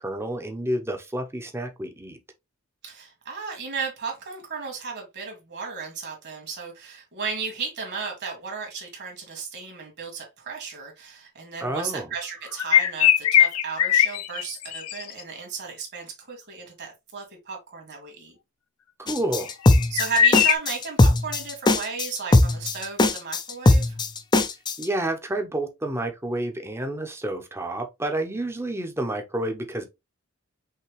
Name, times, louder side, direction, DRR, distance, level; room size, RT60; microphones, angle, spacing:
voice 1, 0.0-2.2 11.6-12.1 19.0-19.5 24.8-29.8, right 1 dB, 10° right, 0.8 m, -29 dB
voice 2, 2.8-18.4 19.9-24.0, right 5 dB, 55° right, 2.1 m, -34 dB
sound 1, 12.5-15.2 19.4-20.6, left 10 dB, 90° left, 0.5 m, -20 dB
sound 2, 19.1-24.9, left 2 dB, 20° left, 0.5 m, -19 dB
5.6 x 2.9 x 3.1 m
head